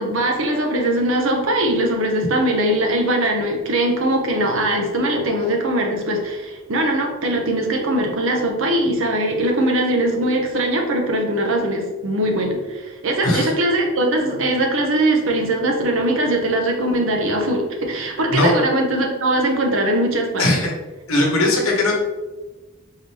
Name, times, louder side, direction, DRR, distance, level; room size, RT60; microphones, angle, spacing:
voice 1, 0.0-20.5, right 1 dB, 70° right, 2 dB, 0.7 m, -21 dB
voice 2, 20.4-20.7 21.1-22.0, left 2 dB, 90° left, -1 dB, 0.9 m, -18 dB
3.8 x 3.3 x 2.8 m, 1.2 s
head